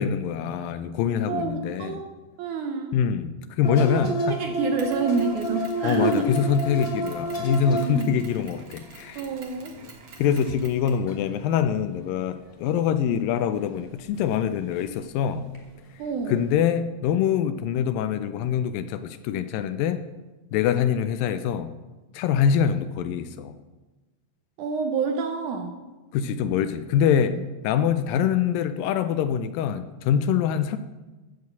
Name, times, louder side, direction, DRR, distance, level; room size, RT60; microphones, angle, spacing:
voice 1, 0.0-2.0 2.9-3.3 3.6-4.4 5.8-9.2 10.2-15.5 16.3-20.0 20.5-21.7 22.1-23.6 26.1-27.4 27.6-30.8, left 8 dB, 80° left, 11 dB, 2.2 m, -24 dB
voice 2, 1.3-3.0 4.0-6.3 7.8-8.1 9.2-9.8 16.0-16.5 24.6-25.8 27.1-27.4, right 4 dB, 75° right, 5 dB, 1.9 m, -28 dB
sound 1, 3.6-8.3 8.7-9.1 9.4-11.4 12.0-12.2 14.1-14.5 14.7-14.8 15.5-16.1 16.5-16.6, right 1 dB, 50° left, 0.6 m, -31 dB
Mechanisms, 4.8-11.1, right 4 dB, 55° right, 1.4 m, -48 dB
13.0 x 4.9 x 8.1 m, 1.2 s
omnidirectional pair, 4.2 m